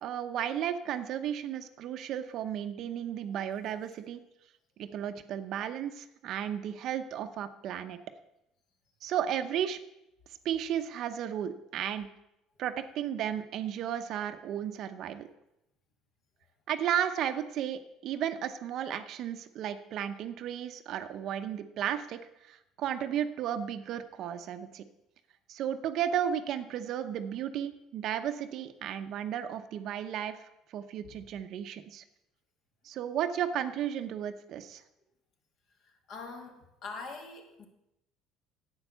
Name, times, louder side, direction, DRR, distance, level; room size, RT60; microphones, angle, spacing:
voice 1, 0.0-4.2 4.8-8.0 9.0-9.8 10.4-12.1 12.6-15.3 16.7-24.8 25.5-32.0 32.8-34.8, right 9 dB, 50° right, 9 dB, 0.8 m, -34 dB
voice 2, 36.1-37.7, left 4 dB, 50° left, 3 dB, 2.4 m, -43 dB
10.5 x 8.8 x 6.8 m, 0.86 s
cardioid pair, 145°, 0 cm